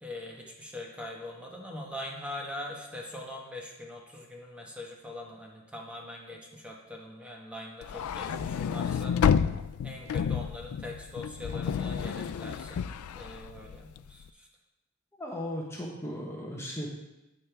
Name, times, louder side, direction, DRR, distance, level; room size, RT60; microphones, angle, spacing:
voice 1, 0.0-9.2 9.8-14.5 15.8-15.9, left 1 dB, 5° right, -2 dB, 1.3 m, -42 dB
sound 1, 7.8-14.1, left 7 dB, 90° left, 0.3 m, -30 dB
voice 2, 15.2-16.9, equal, 15° left, -2 dB, 1.1 m, -36 dB
9.4 x 8.9 x 3.4 m, 0.96 s
head